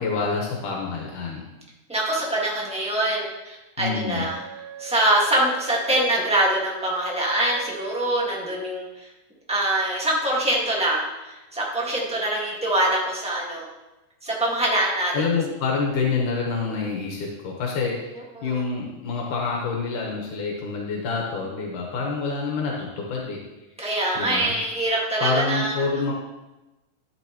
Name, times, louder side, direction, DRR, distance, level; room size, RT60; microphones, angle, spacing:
voice 1, 0.0-1.4 3.8-4.3 15.1-23.4 24.2-24.5 25.2-26.1, left 4 dB, 80° left, -1 dB, 2.8 m, -27 dB
voice 2, 1.9-4.4 4.8-9.1 9.5-13.7 14.2-15.3 18.3-18.6 23.8-26.1, right 1 dB, 5° right, -3 dB, 0.5 m, -24 dB
Wind instrument woodwind instrument, 4.0-8.6, right 10 dB, 80° right, 2.2 m, -40 dB
12.0 x 7.9 x 3.0 m, 1.0 s
omnidirectional pair, 3.6 m